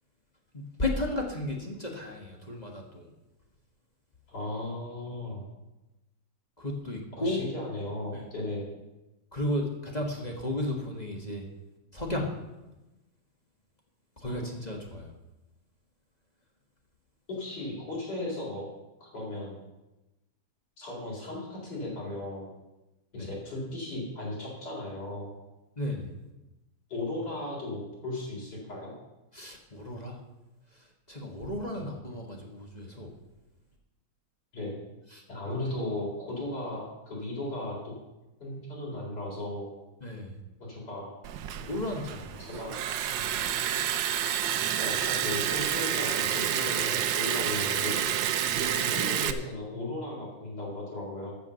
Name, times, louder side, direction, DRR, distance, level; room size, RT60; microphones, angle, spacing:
voice 1, 0.5-3.1 6.6-7.4 8.1-8.3 9.3-11.5 11.9-12.3 14.2-15.1 23.2-23.3 25.8-26.1 29.3-30.2 31.1-33.1 35.1-35.2 40.0-40.3 41.6-42.5 43.2-43.3 48.4-48.9, left 1 dB, 20° left, 0 dB, 1.3 m, -34 dB
voice 2, 4.3-5.4 7.2-8.7 14.3-14.4 17.3-18.7 19.0-19.6 20.8-22.5 23.1-25.3 26.9-28.9 31.7-31.8 34.5-34.8 35.3-37.9 38.4-39.7 40.6-41.2 42.4-42.8 44.8-48.0 48.7-51.3, left 2 dB, 45° left, -5 dB, 4.4 m, -36 dB
Liquid, 41.2-49.3, right 10 dB, 70° right, 1.2 m, -29 dB
14.0 x 6.1 x 6.9 m, 1.0 s
omnidirectional pair, 2.4 m